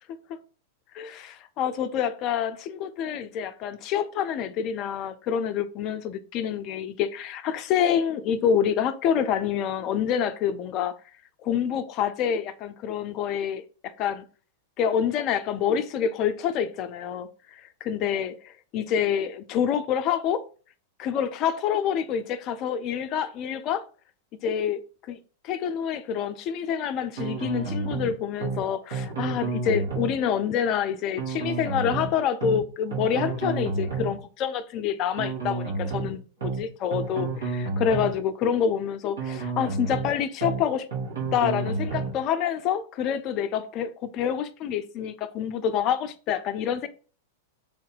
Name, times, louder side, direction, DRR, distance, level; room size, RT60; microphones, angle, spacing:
voice 1, 0.9-10.9 11.4-14.2 14.8-18.3 18.7-20.4 21.0-23.8 24.4-24.8 25.1-25.2 25.4-40.9 41.3-46.9, left 8 dB, 40° left, 0.5 m, -27 dB
sound 1, 27.2-28.1 28.4-28.6 28.9-30.1 31.2-32.1 32.4-32.6 32.9-34.1 35.2-36.1 36.4-36.6 36.9-38.1 39.2-40.1 40.4-40.6 40.9-42.1, right 4 dB, 75° right, 1.9 m, -30 dB
3.5 x 2.7 x 3.8 m
figure-of-eight pair, 95°, 0 cm